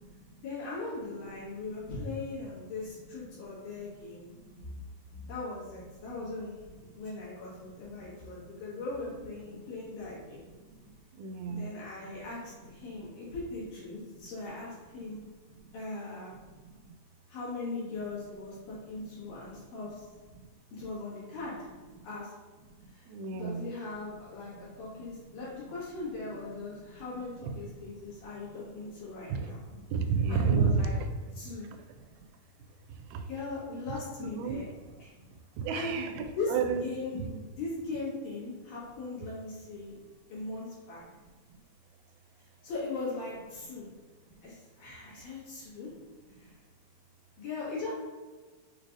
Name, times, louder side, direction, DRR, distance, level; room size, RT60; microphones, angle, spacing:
voice 1, 0.4-4.2 5.2-6.5 6.9-10.4 11.5-15.2 15.7-16.3 17.3-20.1 20.7-21.6 22.0-22.3 22.9-29.6 30.3-30.9 31.3-31.7 33.3-34.6 35.7-35.9 36.3-36.5 36.8-37.2 37.6-40.0 40.3-41.0 42.4-43.9 44.4-45.9 46.3-46.6 47.4-47.9, left 3 dB, 65° left, -8 dB, 2.9 m, -39 dB
voice 2, 11.2-11.7 23.1-23.7 27.4-27.5 29.3-29.4 29.9-30.9 33.1-33.2 34.2-34.6 35.6-37.4, right 6 dB, 90° right, 6 dB, 2.4 m, -30 dB
6.4 x 3.2 x 2.5 m, 1.4 s
omnidirectional pair, 4.2 m